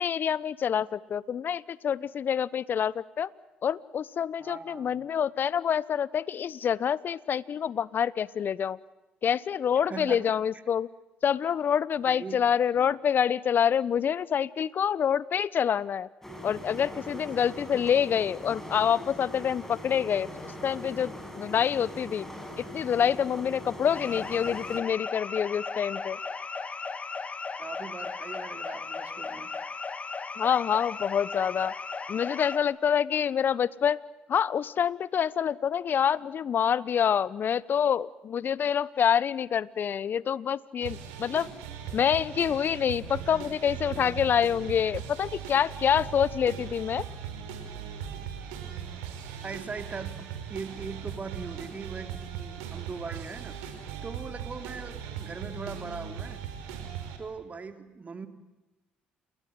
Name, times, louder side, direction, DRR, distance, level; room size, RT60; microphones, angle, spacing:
voice 1, 0.0-3.3 3.6-8.8 9.2-10.9 11.2-16.1 16.4-22.3 22.6-26.2 30.4-31.7 32.1-34.0 34.3-41.5 41.9-47.0, left 8 dB, 50° left, 20 dB, 1.0 m, -27 dB
voice 2, 4.4-5.0 9.8-10.3 12.0-12.4 12.8-12.9 27.6-29.7 49.4-53.8 54.0-56.5 57.2-58.3, right 4 dB, 35° right, 8 dB, 3.3 m, -40 dB
sound 1, 16.2-24.8, equal, 10° left, 7.8 m, -41 dB
sound 2, 23.9-32.6, left 4 dB, 35° left, 2.0 m, -36 dB
sound 3, 40.8-57.2, right 8 dB, 80° right, 4.9 m, -39 dB
29.0 x 21.5 x 7.7 m, 1.0 s
hypercardioid pair, 60°, 4 cm